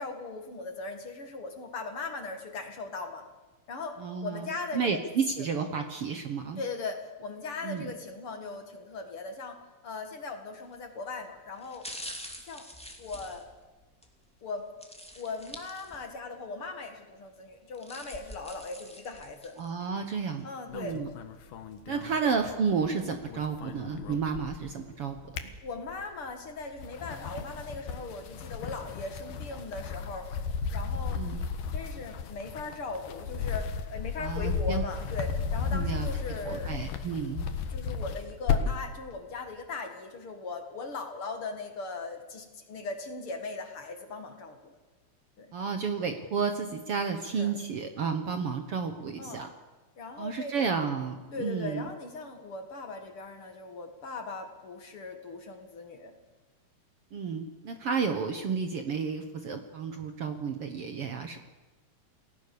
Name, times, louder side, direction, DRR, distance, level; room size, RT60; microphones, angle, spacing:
voice 1, 0.0-3.2 3.7-5.0 5.4-5.5 6.6-11.9 12.5-12.7 13.0-13.5 14.4-14.7 15.2-19.5 20.4-21.0 22.1-22.3 25.6-30.3 30.7-31.2 31.7-36.7 37.7-44.7 45.4-45.5 47.3-47.5 49.2-49.4 50.0-50.8 51.3-56.1, left 3 dB, 45° left, 6 dB, 2.2 m, -39 dB
voice 2, 4.0-6.6 7.6-7.9 19.6-20.5 20.7-21.1 21.9-25.3 31.1-31.5 34.2-34.8 35.7-36.1 36.4-37.5 45.5-49.5 50.2-51.9 57.1-61.4, right 5 dB, 70° right, 6 dB, 1.3 m, -31 dB
sound 1, 10.6-10.9 11.6-14.1 14.8-16.3 16.6-16.7 17.5-19.7 20.2-20.3, equal, ahead, 1.6 m, -45 dB
sound 2, 20.7-22.9 23.1-24.7 25.1-26.2 26.7-38.9, left 6 dB, 65° left, 2.9 m, -34 dB
28.5 x 18.0 x 6.9 m, 1.2 s
omnidirectional pair, 4.5 m